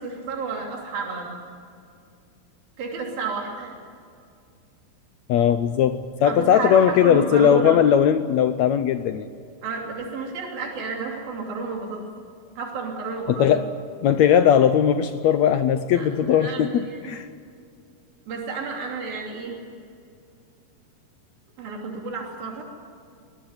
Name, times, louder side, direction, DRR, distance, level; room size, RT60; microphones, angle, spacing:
voice 1, 0.0-1.4 2.8-3.8 6.2-7.8 9.6-12.1 12.6-13.5 16.0-17.1 18.3-19.6 21.6-22.6, right 4 dB, 85° right, 0 dB, 4.8 m, -31 dB
voice 2, 5.3-9.3 13.3-13.7 14.0-17.3, left 9 dB, 80° left, 10 dB, 1.6 m, -19 dB
23.0 x 19.0 x 9.7 m, 2.4 s
omnidirectional pair, 4.1 m